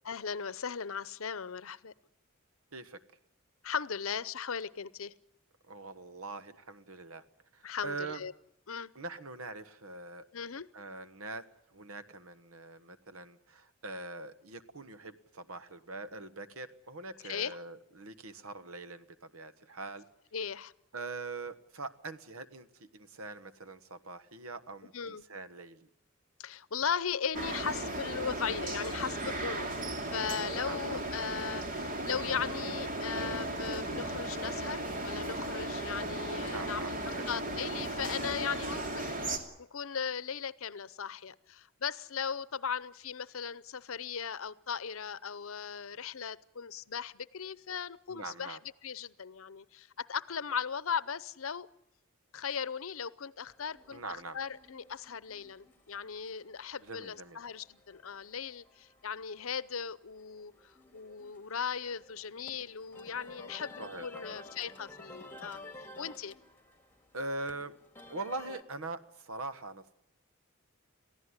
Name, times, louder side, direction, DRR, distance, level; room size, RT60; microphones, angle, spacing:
voice 1, 0.0-1.9 3.6-5.1 7.6-8.3 8.7-8.9 10.3-10.7 17.2-17.6 20.3-20.7 24.9-25.2 26.4-29.7 30.0-51.7 52.3-66.4, left 7 dB, 70° left, 18 dB, 0.8 m, -38 dB
voice 2, 5.7-7.2 7.5-8.2 8.9-10.3 10.7-11.4 11.7-20.0 20.9-25.9 30.6-31.0 36.4-37.2 48.1-48.6 53.9-54.4 56.8-57.4 63.8-64.4 67.1-67.7 68.1-69.9, right 3 dB, 80° right, 11 dB, 1.4 m, -43 dB
sound 1, 27.3-39.4, right 1 dB, 40° right, 2.6 m, -36 dB
sound 2, 53.5-68.6, left 2 dB, 10° left, 2.0 m, -53 dB
22.5 x 15.5 x 9.8 m, 0.77 s
head